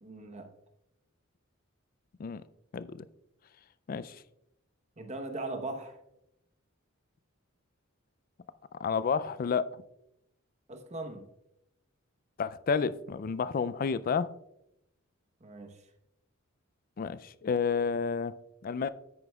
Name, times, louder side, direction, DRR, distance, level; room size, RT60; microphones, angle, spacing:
voice 1, 0.0-0.5 5.0-6.0 10.7-11.3 15.4-15.8, right 2 dB, 35° right, 5 dB, 0.9 m, -39 dB
voice 2, 2.7-3.1 3.9-4.2 8.7-9.7 12.4-14.3 17.0-18.3 18.6-18.9, left 5 dB, 45° left, 16 dB, 0.3 m, -30 dB
9.6 x 9.0 x 2.3 m, 0.83 s
head